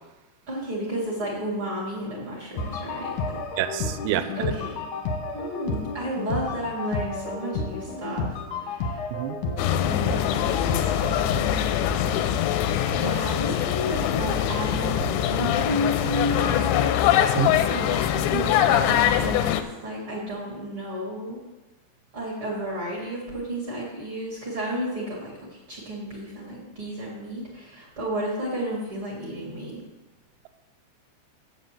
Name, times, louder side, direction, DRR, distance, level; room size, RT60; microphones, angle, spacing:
voice 1, 0.5-3.4 4.0-4.8 5.3-9.1 9.6-12.2 13.0-16.9 17.7-21.4 22.1-29.8, equal, 40° right, -6 dB, 2.1 m, -32 dB
sound 1, 2.6-11.4, left 4 dB, 70° left, 1.8 m, -31 dB
voice 2, 3.6-4.2 9.1-9.4 17.3-17.6, right 12 dB, 80° right, 11 dB, 2.7 m, -27 dB
sound 2, 9.6-19.6, left 10 dB, 85° left, 2.9 m, -23 dB
7.9 x 6.7 x 7.4 m, 1.1 s
omnidirectional pair, 5.2 m